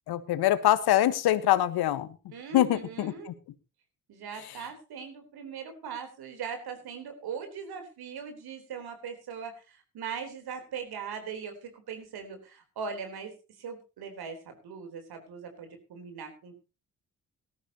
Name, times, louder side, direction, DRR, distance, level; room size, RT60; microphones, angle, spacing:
voice 1, 0.1-2.1 2.5-3.3, left 13 dB, 70° left, 14 dB, 1.4 m, -24 dB
voice 2, 2.3-3.3 4.1-16.5, right 6 dB, 70° right, 6 dB, 3.9 m, -40 dB
18.5 x 13.5 x 2.9 m, 0.31 s
hypercardioid pair, 50°, 39 cm